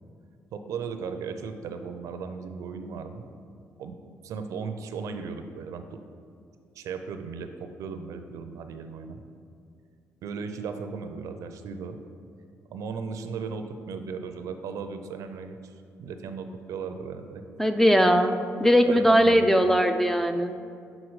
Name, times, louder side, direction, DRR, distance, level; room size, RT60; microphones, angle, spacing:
voice 1, 0.5-3.2 3.8-4.0 4.2-6.0 6.8-9.2 10.2-12.0 12.7-17.4 18.9-19.5, right 5 dB, 80° right, 7 dB, 0.5 m, -36 dB
voice 2, 17.6-18.3 18.6-20.5, equal, 5° left, 7 dB, 0.3 m, -20 dB
6.3 x 3.8 x 4.7 m, 2.3 s
cardioid pair, 100°, 6 cm